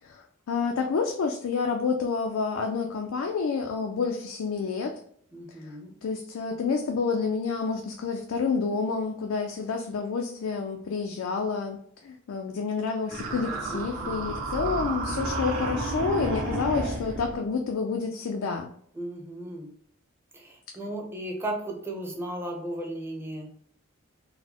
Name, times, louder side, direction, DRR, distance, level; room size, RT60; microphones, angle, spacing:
voice 1, 0.0-5.0 5.5-5.8 6.0-18.7, left 5 dB, 80° left, 3 dB, 0.4 m, -29 dB
voice 2, 5.3-5.9 13.7-13.8 18.9-19.7 20.3-23.5, right 1 dB, 10° right, 0 dB, 0.6 m, -35 dB
sound 1, 13.1-17.4, right 2 dB, 80° right, 1.1 m, -31 dB
3.9 x 2.1 x 2.9 m, 0.63 s
head